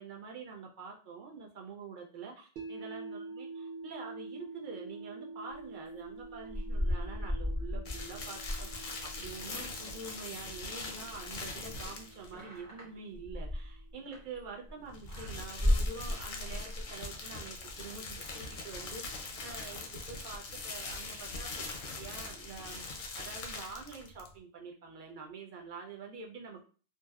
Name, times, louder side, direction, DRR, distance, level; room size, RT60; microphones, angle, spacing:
voice 1, 0.0-3.5 3.8-21.7 21.9-26.6, right 4 dB, 55° right, 0 dB, 0.6 m, -46 dB
sound 1, 2.6-14.7, right 3 dB, 90° right, 0.9 m, -48 dB
sound 2, 6.2-10.7 11.0-14.7 15.1-17.0, left 1 dB, 20° right, 0.7 m, -35 dB
sound 3, 7.8-12.3 14.8-24.4, left 3 dB, 60° left, 0.6 m, -42 dB
2.7 x 2.0 x 2.3 m, 0.39 s
omnidirectional pair, 1.1 m